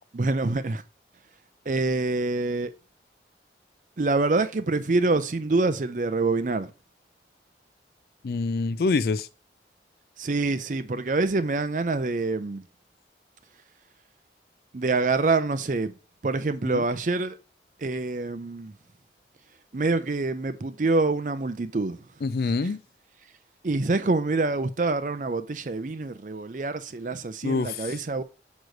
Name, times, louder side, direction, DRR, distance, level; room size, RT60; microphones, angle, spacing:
voice 1, 0.1-0.8 1.7-2.7 4.0-6.7 10.2-12.6 14.7-15.9 16.2-17.4 17.8-18.7 19.7-22.0 23.6-28.2, right 3 dB, 45° right, 0.5 m, -26 dB
voice 2, 8.2-9.3 16.6-16.8 22.2-22.8 27.4-27.9, left 4 dB, 60° left, 0.4 m, -26 dB
6.3 x 3.1 x 5.2 m
head